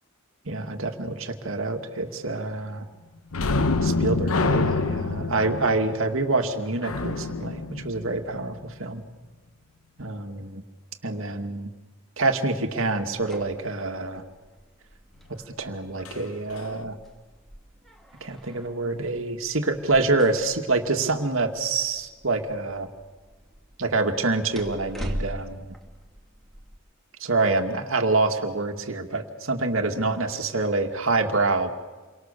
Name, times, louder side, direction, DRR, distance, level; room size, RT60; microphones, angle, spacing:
voice 1, 0.5-2.9 3.8-9.0 10.0-10.6 11.0-11.7 12.2-14.2 15.6-17.0 18.2-22.9 23.8-25.7 27.2-31.7, right 3 dB, 70° right, 5 dB, 2.3 m, -26 dB
sound 1, 3.3-8.7 16.0-16.2 16.6-16.7, left 3 dB, 80° left, 1.1 m, -27 dB
sound 2, 12.8-26.7, equal, ahead, 2.6 m, -42 dB
29.5 x 24.5 x 6.9 m, 1.3 s
head